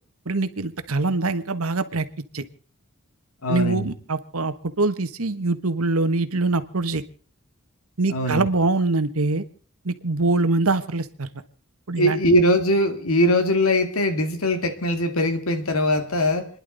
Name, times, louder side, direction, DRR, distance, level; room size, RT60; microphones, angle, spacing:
voice 1, 0.2-2.0 2.3-2.4 3.5-7.0 8.0-9.4 9.8-11.3 11.9-12.2, right 3 dB, 90° right, 11 dB, 1.3 m, -23 dB
voice 2, 3.4-3.9 8.1-8.5 12.0-16.5, left 1 dB, 85° left, 7 dB, 2.2 m, -21 dB
29.5 x 11.0 x 4.0 m, 0.42 s
head